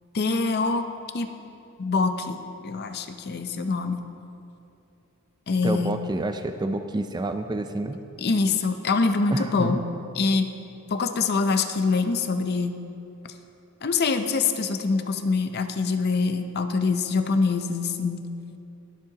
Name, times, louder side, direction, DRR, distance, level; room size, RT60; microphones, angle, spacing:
voice 1, 0.1-0.9 1.1-1.3 1.8-2.4 2.6-4.0 5.5-6.0 8.2-9.8 10.2-10.5 10.9-12.8 13.8-18.2, left 4 dB, 50° left, 8 dB, 0.6 m, -24 dB
voice 2, 5.6-8.0 9.3-9.8, right 2 dB, 20° right, 7 dB, 0.4 m, -28 dB
20.0 x 7.4 x 2.9 m, 2.7 s
head